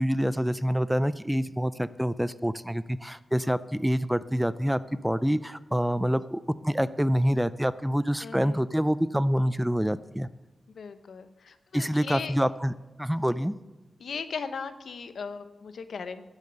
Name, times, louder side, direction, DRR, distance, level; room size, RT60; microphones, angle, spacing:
voice 1, 0.0-10.3 11.7-12.7 13.0-13.5, equal, 5° right, 16 dB, 0.3 m, -26 dB
voice 2, 8.2-8.6 10.7-12.3 14.0-16.3, left 5 dB, 70° left, 11 dB, 0.7 m, -38 dB
10.5 x 8.2 x 6.9 m, 1.1 s
wide cardioid pair, 95°, 0 cm